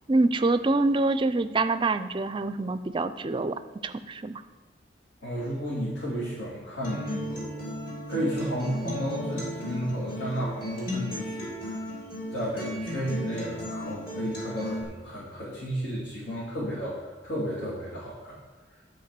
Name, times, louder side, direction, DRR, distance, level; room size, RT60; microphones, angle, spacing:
voice 1, 0.1-3.6 3.8-4.4, right 2 dB, 25° right, 12 dB, 0.4 m, -25 dB
voice 2, 5.2-7.7 8.1-11.8 12.3-18.4, equal, 85° left, -7 dB, 2.6 m, -33 dB
Acoustic guitar, 6.8-14.8, equal, 50° left, 2.9 m, -35 dB
10.0 x 4.6 x 7.5 m, 1.3 s
head